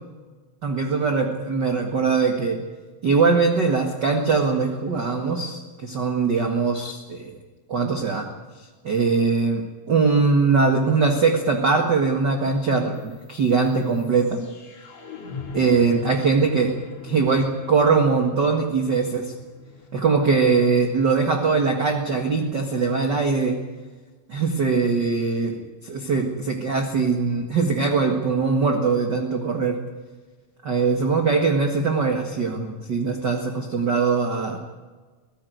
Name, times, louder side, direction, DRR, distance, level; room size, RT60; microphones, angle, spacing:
voice 1, 0.6-2.6 3.0-7.3 7.7-8.3 8.8-14.4 15.5-16.7 17.0-19.3 19.9-23.6 24.3-29.8 30.6-34.6, right 4 dB, 40° right, 3 dB, 1.8 m, -21 dB
sound 1, 13.0-23.0, left 5 dB, 55° left, 4.7 m, -41 dB
23.5 x 15.5 x 9.3 m, 1.4 s
omnidirectional pair, 3.8 m